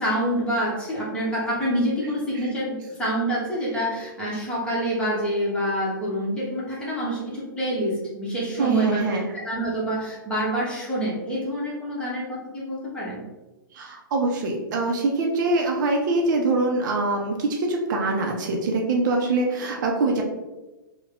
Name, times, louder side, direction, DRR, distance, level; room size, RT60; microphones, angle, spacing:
voice 1, 0.0-9.0 9.3-13.2, equal, 10° left, -6 dB, 1.3 m, -27 dB
voice 2, 8.6-9.3 13.7-20.2, right 2 dB, 55° right, 1 dB, 0.6 m, -24 dB
3.4 x 2.3 x 3.5 m, 1.1 s
figure-of-eight pair, 110°, 12 cm